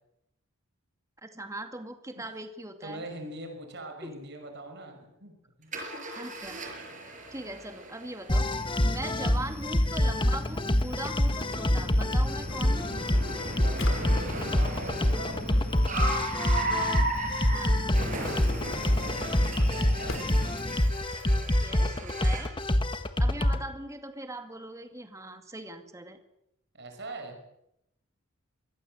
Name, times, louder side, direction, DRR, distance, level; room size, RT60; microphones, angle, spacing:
voice 1, 1.2-3.0 4.0-4.1 6.1-6.6 7.3-12.9 17.5-17.8 21.6-22.5 23.2-26.2, right 1 dB, 15° right, 6 dB, 2.3 m, -40 dB
voice 2, 2.8-5.3 5.6-5.7 8.9-9.2 13.4-16.1 18.8-20.3 26.7-27.4, right 2 dB, 55° right, 4 dB, 5.8 m, -42 dB
Car, 5.7-22.6, right 1 dB, 40° right, 6.2 m, -37 dB
sound 1, 8.3-23.6, left 1 dB, 25° left, 1.5 m, -26 dB
Drawer open or close, 11.2-21.1, left 2 dB, 60° left, 3.2 m, -46 dB
25.5 x 22.0 x 7.7 m, 0.82 s
head